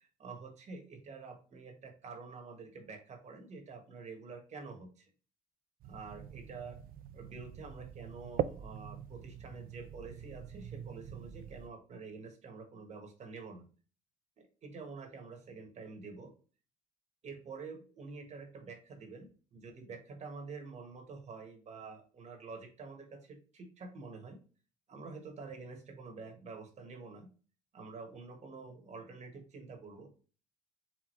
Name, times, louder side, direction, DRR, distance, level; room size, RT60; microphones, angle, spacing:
voice 1, 0.0-5.1 5.8-6.8 7.1-13.7 14.4-16.3 17.2-24.4 24.9-27.3 27.7-30.1, right 4 dB, 45° right, 4 dB, 1.4 m, -48 dB
sound 1, 5.8-11.7, right 10 dB, 60° right, 0.4 m, -42 dB
4.8 x 3.5 x 3.2 m, 0.38 s
cardioid pair, 110°, 17 cm